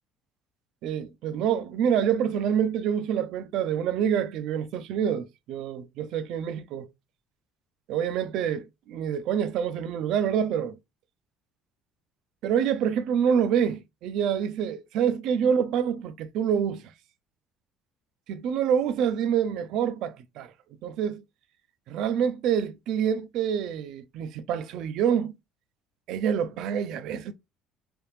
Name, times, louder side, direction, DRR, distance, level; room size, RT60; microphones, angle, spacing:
voice 1, 0.8-6.9 7.9-10.8 12.4-16.8 18.3-20.5 20.8-21.2 21.9-25.3 26.1-27.3, right 8 dB, 60° right, 0.4 m, -26 dB
3.4 x 2.7 x 3.0 m
cardioid pair, 160°, 0 cm